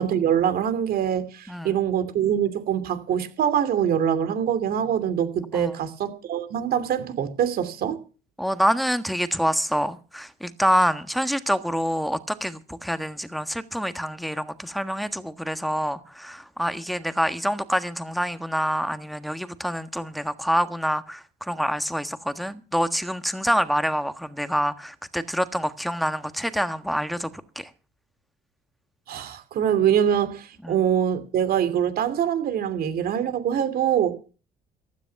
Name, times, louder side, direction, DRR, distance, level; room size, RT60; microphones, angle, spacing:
voice 1, 0.0-8.0 29.1-34.2, right 9 dB, 65° right, 2.8 m, -24 dB
voice 2, 1.5-1.8 5.5-5.7 8.4-27.3 27.5-27.7 30.6-30.8, equal, ahead, 1.5 m, -26 dB
15.5 x 13.0 x 5.9 m
cardioid pair, 110°, 17 cm